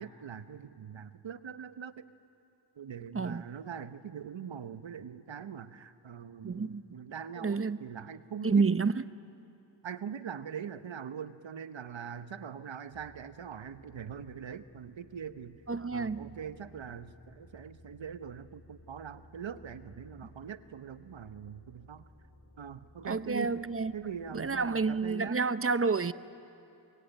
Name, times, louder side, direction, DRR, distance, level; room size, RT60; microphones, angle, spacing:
voice 1, 0.0-2.1 2.8-8.7 9.8-15.6 15.9-22.1 22.6-23.5 23.9-25.4, right 8 dB, 85° right, 0.9 m, -42 dB
voice 2, 6.4-6.8 7.4-7.8 8.4-8.9 15.7-16.3 23.0-23.9 24.3-26.1, right 4 dB, 30° right, 0.7 m, -29 dB
sound 1, 12.9-25.1, left 1 dB, 65° left, 3.6 m, -58 dB
25.0 x 22.0 x 9.1 m
wide cardioid pair, 55°, 44 cm